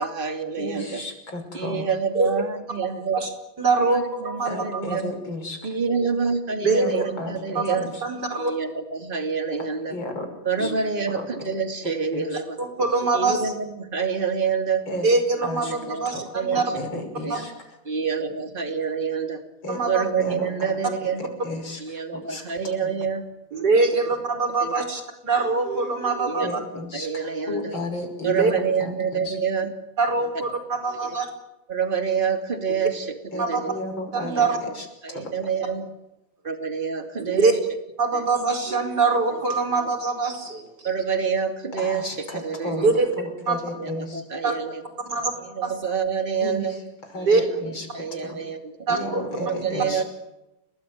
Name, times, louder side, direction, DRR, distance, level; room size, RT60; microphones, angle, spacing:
voice 1, 0.0-1.0 1.5-3.2 3.8-5.1 5.6-7.9 8.4-10.0 10.4-12.6 13.1-14.8 15.6-16.0 16.3-16.6 17.2-17.4 17.8-19.4 19.8-21.3 21.8-23.2 23.7-24.0 24.6-25.0 26.3-26.5 26.9-27.7 28.2-29.7 31.0-31.2 31.7-33.8 34.3-34.6 35.0-35.9 36.4-37.6 38.1-38.3 39.3-39.4 40.8-43.1 43.8-44.8 45.4-46.7 47.2-47.6 47.9-48.8 49.4-50.0, right 6 dB, 25° right, 6 dB, 2.9 m, -27 dB
voice 2, 0.6-1.9 4.4-5.6 6.6-7.9 9.9-10.3 10.6-10.7 11.1-11.3 12.1-12.2 14.9-15.1 15.4-15.7 16.1-16.2 16.5-17.5 19.6-19.8 20.2-20.5 21.4-21.8 22.1-22.4 26.4-28.5 28.8-29.3 33.3-34.5 34.7-35.2 41.8-42.9 43.2-44.2 46.4-46.7 47.1-47.9 48.2-48.4 48.9-50.0, left 1 dB, 75° left, 5 dB, 6.8 m, -33 dB
voice 3, 3.6-4.5 4.9-5.0 6.6-7.0 7.6-8.5 10.6-10.7 12.6-13.4 15.0-16.7 17.3-17.5 19.7-20.0 23.5-26.5 28.2-28.5 30.0-31.3 33.4-33.6 34.1-34.6 37.2-37.5 38.0-40.7 42.8-43.1 43.5-43.6 44.4-44.5 45.1-45.3 45.6-45.7 47.3-47.4 48.9-49.2, right 3 dB, 55° right, 7 dB, 5.4 m, -23 dB
30.0 x 20.5 x 9.4 m, 0.95 s
omnidirectional pair, 2.1 m